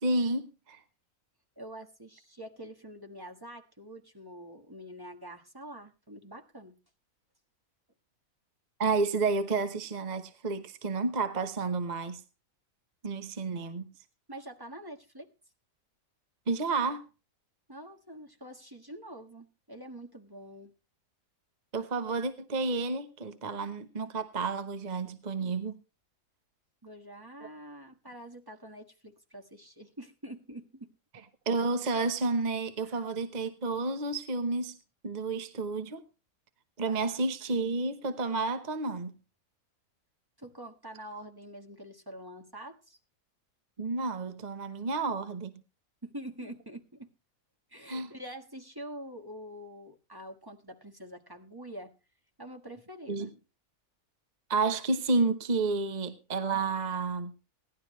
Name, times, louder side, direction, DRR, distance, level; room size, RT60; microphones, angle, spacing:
voice 1, 0.0-0.8 8.8-12.2 13.0-13.8 16.5-17.0 21.7-25.7 31.5-34.7 35.0-36.0 36.8-39.1 43.8-45.5 47.9-48.1 53.1-53.3 54.5-57.3, right 3 dB, 35° right, 9 dB, 1.0 m, -30 dB
voice 2, 1.6-6.7 14.3-15.3 17.7-20.7 26.8-30.9 32.8-33.0 36.8-37.2 40.4-43.0 46.0-47.1 47.7-51.9 52.4-53.3, right 1 dB, 15° right, 3 dB, 1.4 m, -46 dB
17.5 x 11.5 x 3.1 m, 0.31 s
omnidirectional pair, 1.5 m